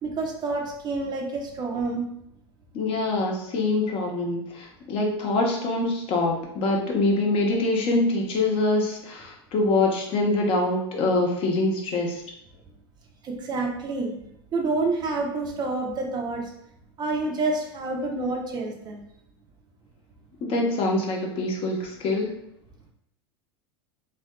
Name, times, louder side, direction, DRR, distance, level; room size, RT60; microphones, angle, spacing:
voice 1, 0.0-2.1 13.2-14.1 14.5-16.5 17.0-19.0, right 3 dB, 35° right, 1 dB, 0.5 m, -28 dB
voice 2, 2.7-12.2 20.4-22.3, left 2 dB, 45° left, 0 dB, 0.7 m, -24 dB
2.7 x 2.3 x 2.2 m, 0.76 s
hypercardioid pair, 95°, 13 cm